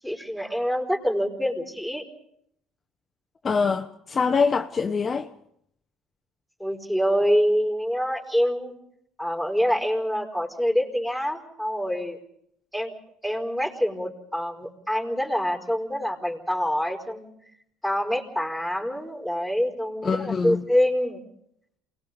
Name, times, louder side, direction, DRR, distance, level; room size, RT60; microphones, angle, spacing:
voice 1, 0.0-2.0 6.6-8.7 9.2-12.2 12.7-12.9 13.2-17.3 17.8-21.2, equal, 5° right, 4.6 m, -26 dB
voice 2, 3.4-5.3 20.0-20.6, left 5 dB, 35° left, 1.0 m, -24 dB
28.0 x 19.5 x 5.3 m
hypercardioid pair, 70°, 0 cm